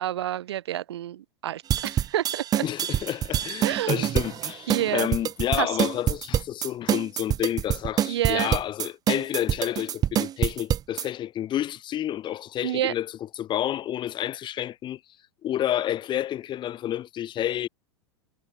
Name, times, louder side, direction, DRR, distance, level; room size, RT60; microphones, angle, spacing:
voice 1, 0.0-2.6 3.6-4.1 4.7-5.1 5.6-5.7 8.1-8.5 12.6-12.9, right 12 dB, 65° right, 7.8 m, -28 dB
sound 1, 1.7-11.0, right 10 dB, 25° right, 0.7 m, -25 dB
voice 2, 2.6-15.0 15.4-17.7, left 12 dB, 35° left, 3.1 m, -30 dB
figure-of-eight pair, 90°, 15 cm